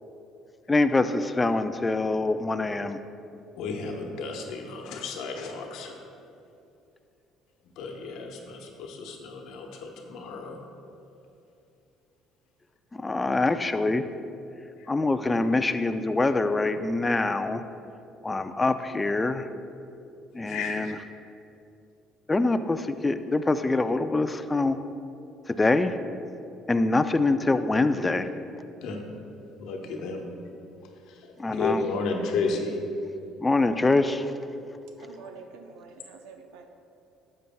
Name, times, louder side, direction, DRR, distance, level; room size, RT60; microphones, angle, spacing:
voice 1, 0.7-3.0 12.9-14.1 14.9-17.6 18.2-19.5 20.3-21.0 22.3-24.8 25.5-26.0 26.7-28.3 31.4-31.8 33.4-34.3, left 2 dB, 20° left, 10 dB, 0.5 m, -24 dB
voice 2, 3.6-6.0 7.8-10.6 14.8-14.9 20.5-20.9 28.8-29.0 29.6-30.3 31.1-32.7, left 4 dB, 70° left, 2 dB, 1.1 m, -33 dB
voice 3, 35.0-36.7, right 4 dB, 75° right, 5 dB, 0.7 m, -47 dB
12.0 x 7.7 x 2.3 m, 2.7 s
hypercardioid pair, 65°, 0 cm